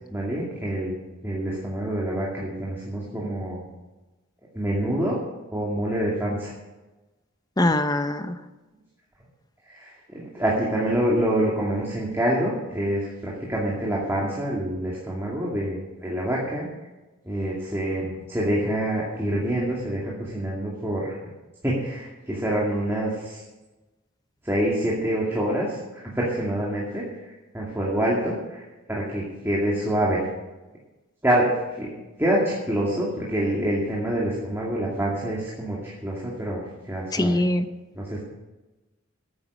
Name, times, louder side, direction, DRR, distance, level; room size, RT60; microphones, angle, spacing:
voice 1, 0.1-3.6 4.5-5.2 5.5-6.5 9.7-16.7 17.2-21.1 21.6-23.4 24.4-30.2 31.2-31.9 32.2-37.4 38.0-38.2, right 1 dB, 10° right, -5 dB, 2.4 m, -26 dB
voice 2, 7.6-8.4 37.1-37.7, left 1 dB, 20° left, 9 dB, 0.8 m, -22 dB
13.5 x 9.6 x 6.2 m, 1.1 s
head